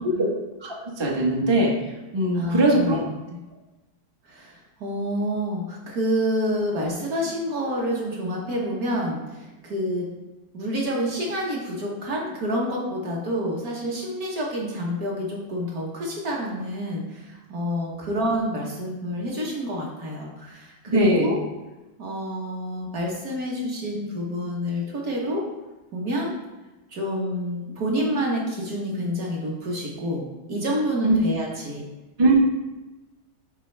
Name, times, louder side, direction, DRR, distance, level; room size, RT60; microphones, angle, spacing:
voice 1, 0.6-1.7 2.1-3.0 20.9-21.4 31.0-31.1 32.2-32.3, right 1 dB, 30° right, -2 dB, 0.4 m, -20 dB
voice 2, 2.3-2.9 4.3-10.1 10.5-21.4 22.0-25.4 25.9-26.3 26.9-31.8, equal, 50° right, -2 dB, 1.5 m, -28 dB
6.8 x 4.5 x 3.3 m, 1.1 s
omnidirectional pair, 2.2 m